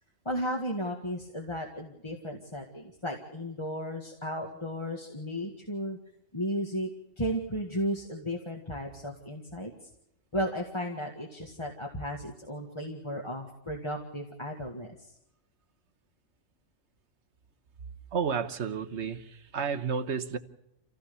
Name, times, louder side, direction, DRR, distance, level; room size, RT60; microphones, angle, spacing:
voice 1, 0.3-6.0 6.3-6.9 7.2-9.9 10.3-15.1, equal, 20° left, 1 dB, 1.9 m, -34 dB
voice 2, 18.1-20.4, right 6 dB, 60° right, 8 dB, 1.4 m, -31 dB
27.0 x 16.0 x 6.9 m, 0.82 s
omnidirectional pair, 1.4 m